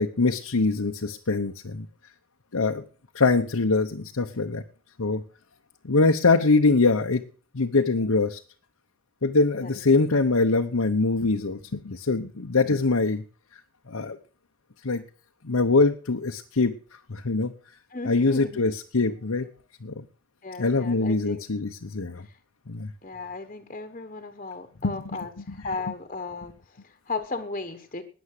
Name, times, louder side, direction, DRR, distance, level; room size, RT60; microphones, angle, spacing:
voice 1, 0.0-1.9 2.5-2.8 3.1-4.6 5.0-5.2 5.8-7.2 7.5-8.4 9.2-13.2 13.9-14.2 14.8-15.0 15.4-16.7 17.1-17.5 18.0-19.5 19.8-20.0 20.6-22.2 22.7-22.9 24.8-25.0, left 3 dB, 75° left, 4 dB, 0.9 m, -23 dB
voice 2, 17.9-18.6 20.4-21.4 22.2-22.4 23.0-28.0, left 3 dB, 30° left, 7 dB, 1.2 m, -35 dB
19.5 x 7.2 x 6.7 m, 0.41 s
head